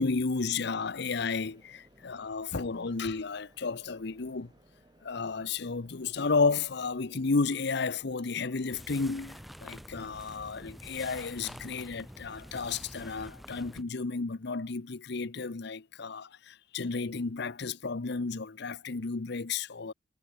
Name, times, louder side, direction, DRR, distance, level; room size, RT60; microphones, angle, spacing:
voice 1, 0.0-4.5 5.0-19.9, left 4 dB, 60° left, 0.8 m, -32 dB
sound 1, 0.9-12.8, right 1 dB, 20° right, 4.1 m, -61 dB
sound 2, 8.7-13.8, equal, ahead, 2.1 m, -47 dB
head